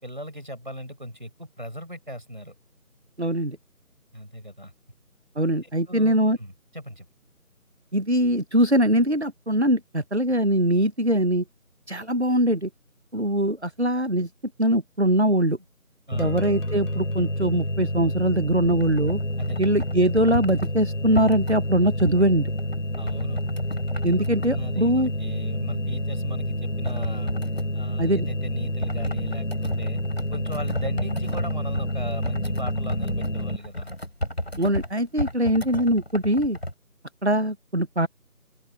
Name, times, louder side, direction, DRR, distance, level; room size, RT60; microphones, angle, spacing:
voice 1, 0.0-2.5 4.1-4.7 5.6-7.1 16.1-16.4 19.4-19.6 23.0-23.4 24.5-27.3 27.7-30.0 30.3-33.9, equal, 35° right, 5.1 m, -37 dB
voice 2, 3.2-3.6 5.4-6.4 7.9-11.4 11.9-12.7 13.1-14.3 14.6-15.6 16.2-19.2 19.6-22.5 24.0-25.1 28.0-28.3 34.6-36.6 37.2-38.1, right 1 dB, 50° right, 0.9 m, -22 dB
sound 1, 16.1-33.6, equal, 60° left, 4.9 m, -29 dB
sound 2, 18.7-24.8 26.8-27.7 28.8-36.7, equal, 45° left, 7.8 m, -34 dB
open air
figure-of-eight pair, 180°, 44 cm